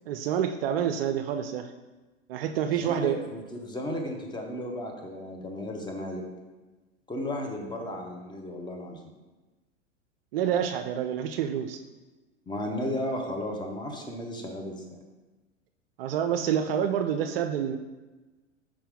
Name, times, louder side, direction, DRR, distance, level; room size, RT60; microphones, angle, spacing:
voice 1, 0.1-1.7 2.3-3.2 10.3-11.8 16.0-17.8, right 9 dB, 50° right, 8 dB, 0.5 m, -28 dB
voice 2, 2.7-6.2 7.1-9.0 12.5-15.0, left 1 dB, 10° left, 2 dB, 0.9 m, -34 dB
5.7 x 4.9 x 3.5 m, 1.2 s
figure-of-eight pair, 95°, 37 cm